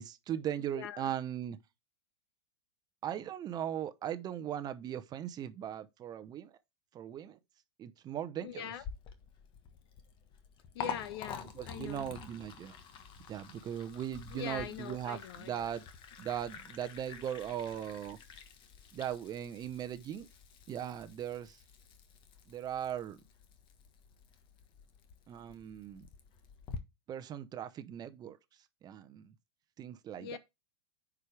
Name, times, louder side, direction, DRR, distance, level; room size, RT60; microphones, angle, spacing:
voice 1, 0.0-1.6 3.0-6.6 6.9-7.4 7.8-8.7 11.5-12.8 13.3-15.8 16.2-18.2 18.9-20.3 20.7-21.6 22.5-23.2 25.3-26.1 27.1-28.4 28.8-29.3 29.8-30.4, right 10 dB, 30° right, 0.8 m, -39 dB
voice 2, 0.7-1.1 8.4-8.8 10.7-12.1 14.3-15.7 30.2-30.4, left 9 dB, 65° left, 1.2 m, -43 dB
Liquid, 8.8-26.8, left 6 dB, 35° left, 1.4 m, -48 dB
9.6 x 4.9 x 3.4 m
hypercardioid pair, 120°, 14 cm